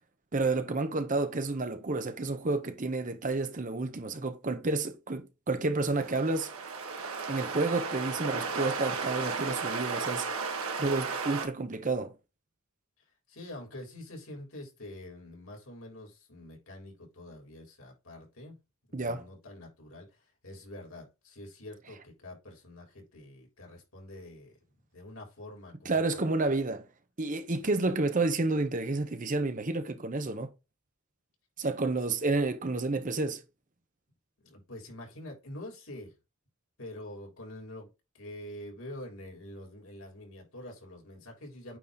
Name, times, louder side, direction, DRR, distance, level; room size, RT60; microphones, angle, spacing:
voice 1, 0.3-6.5 7.3-10.3 10.8-12.1 18.9-19.2 25.8-26.8 27.2-30.5 31.6-33.4, right 3 dB, 35° right, 0.8 m, -30 dB
sound 1, 5.8-11.5, right 4 dB, 90° right, 1.5 m, -34 dB
voice 2, 13.3-18.6 18.9-24.5 24.9-26.3 27.8-27.9 34.4-36.1 36.8-37.9 38.1-41.8, left 1 dB, 75° left, 3.5 m, -46 dB
9.1 x 3.0 x 3.8 m
head